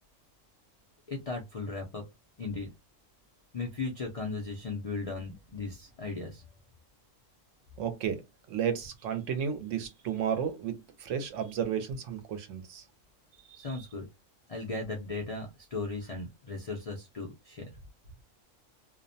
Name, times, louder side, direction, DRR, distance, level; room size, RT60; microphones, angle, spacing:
voice 1, 1.1-2.0 2.4-2.7 3.5-6.4 13.6-14.1 14.5-17.7, left 3 dB, 60° left, 0.3 m, -37 dB
voice 2, 7.8-8.2 8.5-12.8, right 8 dB, 75° right, 0.9 m, -33 dB
2.4 x 2.1 x 2.6 m
omnidirectional pair, 1.4 m